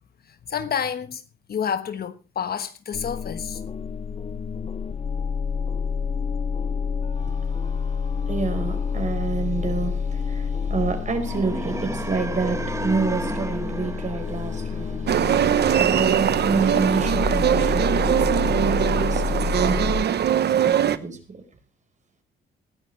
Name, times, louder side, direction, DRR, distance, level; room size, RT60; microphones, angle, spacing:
voice 1, 0.5-1.2 1.5-3.6, left 7 dB, 50° left, 1.3 m, -29 dB
sound 1, 2.9-20.0, left 6 dB, 30° left, 0.6 m, -28 dB
voice 2, 8.3-21.4, right 4 dB, 40° right, 4.6 m, -29 dB
sound 2, 11.2-15.3, right 2 dB, 15° right, 1.3 m, -33 dB
sound 3, 15.1-21.0, right 9 dB, 55° right, 0.9 m, -21 dB
19.5 x 12.5 x 3.2 m
cardioid pair, 90°, 20 cm